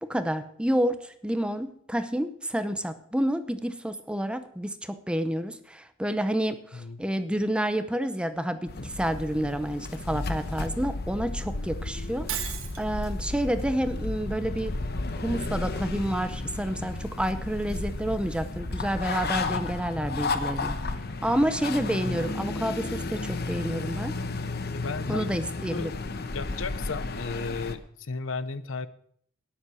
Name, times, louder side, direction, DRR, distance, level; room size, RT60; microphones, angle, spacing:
voice 1, 0.0-12.5 12.8-14.7 15.2-20.8 21.2-24.1 25.1-25.9, equal, 5° right, 11 dB, 0.7 m, -29 dB
sound 1, 8.7-27.8, left 3 dB, 50° left, 1.0 m, -33 dB
Shatter, 12.3-12.8, right 9 dB, 80° right, 1.5 m, -33 dB
voice 2, 24.7-25.3 25.7-25.9 26.3-28.9, left 4 dB, 70° left, 15 dB, 0.7 m, -34 dB
12.5 x 10.5 x 6.3 m, 0.63 s
head